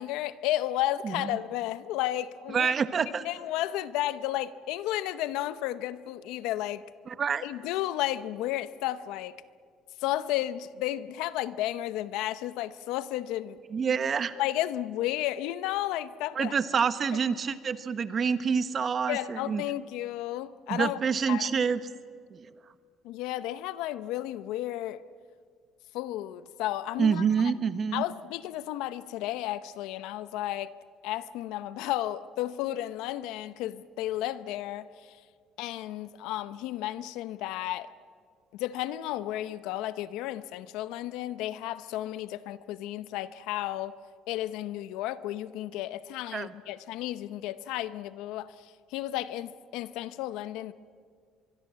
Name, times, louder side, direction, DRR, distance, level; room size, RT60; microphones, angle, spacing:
voice 1, 0.0-2.7 3.2-6.8 7.4-9.4 10.0-13.6 14.4-16.5 19.1-21.0 21.3-21.5 23.0-25.0 25.9-27.2 27.9-30.7 31.0-35.2 35.6-37.9 38.5-43.9 44.3-50.7, left 14 dB, 85° left, 0.8 m, -33 dB
voice 2, 1.0-1.4 2.5-3.3 7.1-7.4 13.7-14.4 16.3-19.6 20.7-21.8 22.3-22.5 27.0-28.0 46.3-46.5, right 6 dB, 35° right, 1.1 m, -27 dB
24.0 x 23.0 x 7.6 m
cardioid pair, 120°, 0 cm